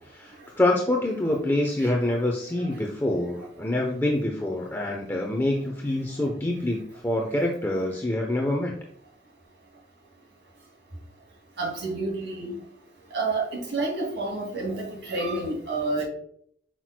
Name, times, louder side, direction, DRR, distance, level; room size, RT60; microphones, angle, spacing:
voice 1, 0.1-8.7, left 1 dB, 15° left, 0 dB, 0.7 m, -26 dB
voice 2, 11.6-12.6 13.1-16.0, right 2 dB, 75° right, -1 dB, 2.5 m, -29 dB
8.7 x 6.0 x 2.2 m, 0.64 s
head